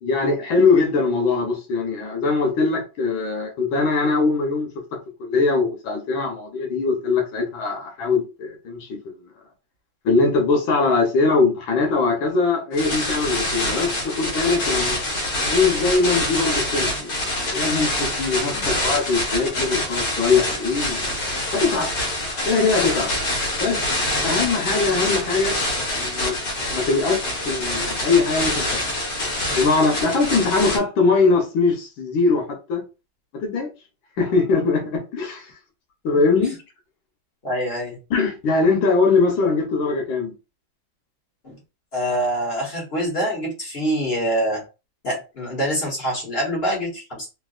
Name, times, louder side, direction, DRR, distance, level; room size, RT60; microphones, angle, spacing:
voice 1, 0.0-9.2 10.0-15.0 15.5-17.3 17.5-21.0 21.5-21.9 22.5-23.1 23.6-23.8 24.2-25.6 26.0-26.3 26.7-28.8 29.5-32.8 33.3-33.7 34.2-35.5 36.0-36.6 38.1-40.3, left 4 dB, 80° left, 1.6 m, -21 dB
sound 1, 12.7-30.8, left 1 dB, 60° left, 1.7 m, -25 dB
voice 2, 37.4-38.0 41.4-41.6 41.9-44.6 45.0-47.3, equal, 35° left, 1.3 m, -25 dB
3.8 x 2.4 x 2.4 m
omnidirectional pair, 2.2 m